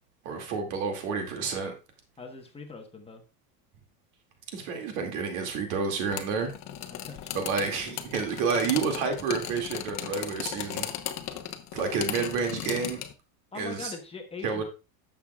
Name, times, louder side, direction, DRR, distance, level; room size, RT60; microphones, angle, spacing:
voice 1, 0.2-1.7 4.5-6.5 7.3-10.9 11.7-13.0 13.5-13.9 14.4-14.6, right 5 dB, 75° right, 2.5 m, -29 dB
voice 2, 2.2-3.2 6.8-7.4 13.5-14.6, left 4 dB, 15° left, 1.2 m, -42 dB
sound 1, 6.1-13.1, left 11 dB, 40° left, 1.0 m, -37 dB
11.0 x 7.4 x 2.4 m
supercardioid pair, 140°, 43 cm